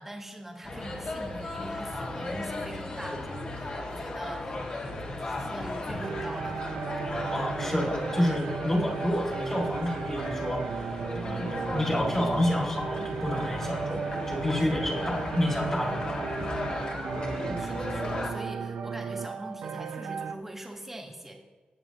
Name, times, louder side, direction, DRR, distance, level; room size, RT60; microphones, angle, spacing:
voice 1, 0.0-4.9 5.2-6.5 11.2-11.5 14.6-14.9 17.6-21.4, right 1 dB, 10° right, 1 dB, 1.5 m, -43 dB
sound 1, 0.6-18.3, left 2 dB, 40° left, 1.9 m, -36 dB
sound 2, 6.0-20.3, right 6 dB, 85° right, 0.6 m, -35 dB
voice 2, 7.3-10.9 11.2-16.5 17.4-17.6, left 1 dB, 20° left, -2 dB, 2.2 m, -29 dB
19.0 x 8.1 x 2.9 m, 1.2 s
wide cardioid pair, 165°, 3 cm